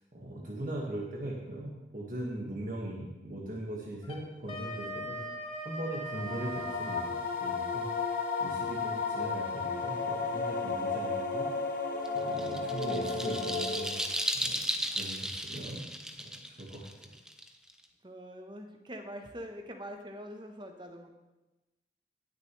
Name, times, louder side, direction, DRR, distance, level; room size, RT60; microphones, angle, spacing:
voice 1, 0.1-5.2 5.6-11.4 12.2-13.9 14.3-15.8 16.2-17.1, right 1 dB, 50° right, -3 dB, 1.6 m, -40 dB
Wind instrument woodwind instrument, 4.0-7.1, right 1 dB, 30° left, 1.2 m, -40 dB
sound 1, 6.1-14.2, left 4 dB, 50° left, 0.9 m, -33 dB
sound 2, 12.0-17.8, equal, 5° right, 0.4 m, -35 dB
voice 2, 18.0-21.1, equal, 25° right, 4 dB, 0.9 m, -44 dB
18.0 x 6.7 x 3.1 m, 1.1 s
head